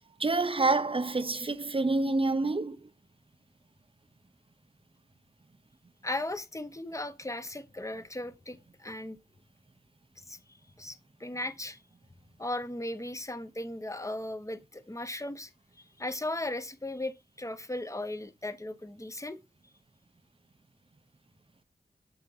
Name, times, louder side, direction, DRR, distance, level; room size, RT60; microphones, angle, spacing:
voice 1, 0.2-2.8, right 3 dB, 30° right, 0.6 m, -27 dB
voice 2, 6.0-9.2 10.3-10.4 10.8-11.8 12.4-15.5 15.8-19.4, left 1 dB, 20° left, 0.8 m, -37 dB
7.9 x 2.9 x 5.5 m
wide cardioid pair, 55°, 17 cm